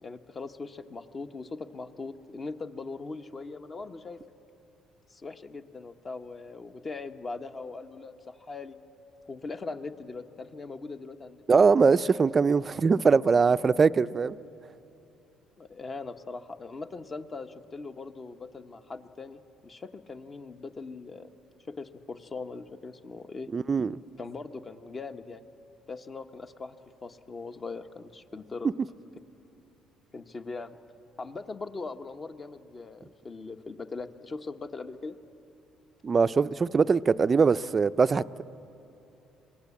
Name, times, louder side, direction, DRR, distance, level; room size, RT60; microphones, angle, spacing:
voice 1, 0.0-4.2 5.1-8.8 9.3-11.4 15.6-21.3 21.7-23.5 24.2-25.5 25.9-26.7 27.0-28.7 30.1-30.8 31.2-35.1, left 3 dB, 30° left, 8 dB, 1.1 m, -40 dB
voice 2, 11.5-14.4 23.5-24.0 36.0-38.4, right 5 dB, 35° right, 15 dB, 0.5 m, -22 dB
26.5 x 20.0 x 8.5 m, 2.9 s
cardioid pair, 95°, 0 cm